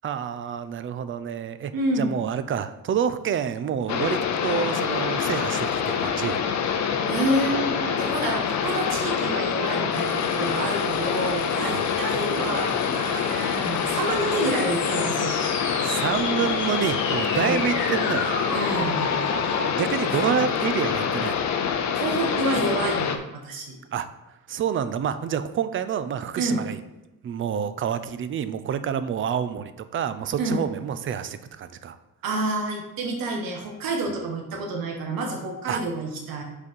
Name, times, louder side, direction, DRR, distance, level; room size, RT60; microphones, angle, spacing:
voice 1, 0.0-6.4 11.7-11.9 15.8-18.3 19.7-21.5 23.9-24.1 24.5-26.8 27.2-32.0 35.7-35.8, right 8 dB, 40° right, 12 dB, 0.4 m, -28 dB
voice 2, 1.7-2.1 7.1-15.3 17.3-17.6 18.5-19.1 20.2-20.3 21.9-23.8 26.4-26.6 30.4-30.6 32.2-36.4, right 2 dB, 90° right, 2 dB, 1.2 m, -28 dB
sound 1, 3.9-23.2, left 7 dB, 55° left, 0.6 m, -26 dB
sound 2, 9.9-19.7, left 3 dB, 35° left, 1.5 m, -34 dB
5.3 x 4.1 x 5.3 m, 1.0 s
cardioid pair, 155°, 34 cm